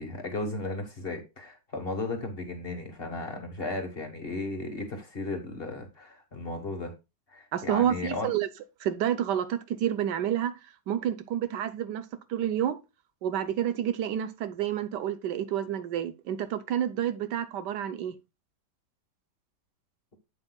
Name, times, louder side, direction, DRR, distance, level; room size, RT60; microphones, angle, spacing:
voice 1, 0.0-6.9 7.3-8.3, left 2 dB, 35° left, 1.3 m, -35 dB
voice 2, 7.5-8.5 8.8-10.6 10.9-12.0 12.3-12.8 13.2-18.1, right 10 dB, 75° right, 1.3 m, -29 dB
8.0 x 7.9 x 2.2 m
omnidirectional pair, 1.9 m